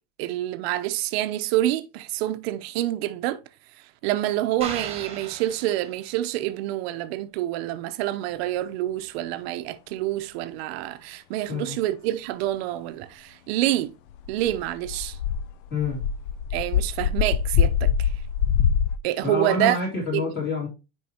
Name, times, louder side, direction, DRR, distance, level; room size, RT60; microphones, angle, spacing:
voice 1, 0.2-3.4 4.0-13.9 14.3-15.2 16.5-18.1 19.0-19.8 20.1-20.2, right 14 dB, 50° right, 0.8 m, -27 dB
sound 1, 4.6-6.3, right 6 dB, 15° right, 1.4 m, -38 dB
sound 2, 14.1-19.0, left 8 dB, 45° left, 0.4 m, -24 dB
voice 2, 15.7-16.0 19.2-20.7, left 4 dB, 25° left, 2.7 m, -27 dB
9.7 x 4.6 x 2.8 m
supercardioid pair, 155°, 39 cm